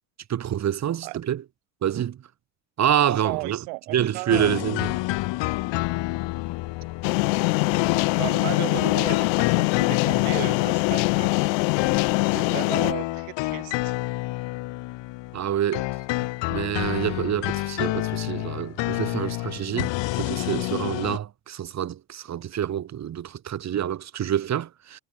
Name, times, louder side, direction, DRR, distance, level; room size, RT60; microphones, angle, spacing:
voice 1, 0.3-1.4 1.8-2.2 2.8-3.6 3.9-4.9 8.8-8.9 15.3-15.9 16.5-25.0, right 10 dB, 35° right, 0.9 m, -27 dB
voice 2, 3.2-4.6 8.2-11.3 12.2-14.0, right 40 dB or more, 80° right, 2.5 m, -35 dB
sound 1, 4.3-15.5 15.7-21.2, left 20 dB, 60° left, 1.0 m, -29 dB
sound 2, 7.0-12.9, left 29 dB, 90° left, 1.1 m, -23 dB
supercardioid pair, 95°, 50 cm